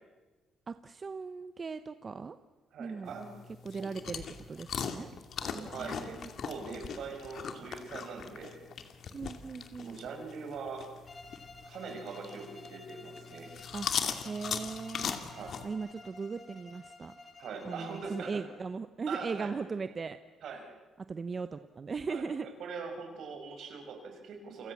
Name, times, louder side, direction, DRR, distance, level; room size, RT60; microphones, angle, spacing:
voice 1, 0.7-2.4 2.8-3.2 3.6-4.2 4.5-5.1 5.5-6.3 9.1-10.0 13.7-13.9 14.2-15.2 15.6-17.1 17.6-20.2 21.1-22.5, right 5 dB, 35° right, 11 dB, 0.9 m, -38 dB
voice 2, 2.7-3.3 3.8-4.3 5.4-6.2 6.4-8.6 9.8-10.9 11.6-13.5 15.3-15.6 17.4-18.5 19.1-19.5 20.4-20.6 22.1-24.7, right 5 dB, 70° right, 4 dB, 6.1 m, -42 dB
sound 1, 3.0-15.7, left 7 dB, 60° left, 2.5 m, -40 dB
Bowed string instrument, 11.1-18.5, left 3 dB, 30° left, 5.1 m, -53 dB
29.5 x 24.5 x 7.3 m, 1.2 s
cardioid pair, 90°, 0 cm